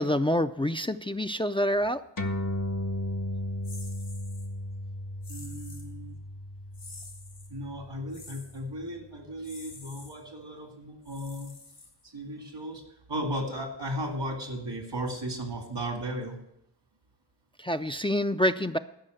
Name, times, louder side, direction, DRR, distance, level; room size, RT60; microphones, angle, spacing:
voice 1, 0.0-2.0 17.6-18.8, equal, 15° left, 9 dB, 0.4 m, -27 dB
sound 1, 2.2-9.0, left 1 dB, 50° left, 0.9 m, -35 dB
sound 2, 3.6-4.5 5.2-5.9 6.7-7.5 8.1-8.6 9.4-10.1 11.0-12.2, left 3 dB, 75° left, 2.2 m, -48 dB
voice 2, 5.3-6.2 7.5-11.5 12.0-12.8 13.1-16.4, equal, 85° right, 3 dB, 2.1 m, -35 dB
11.5 x 5.4 x 7.9 m, 0.78 s
wide cardioid pair, 50°, 41 cm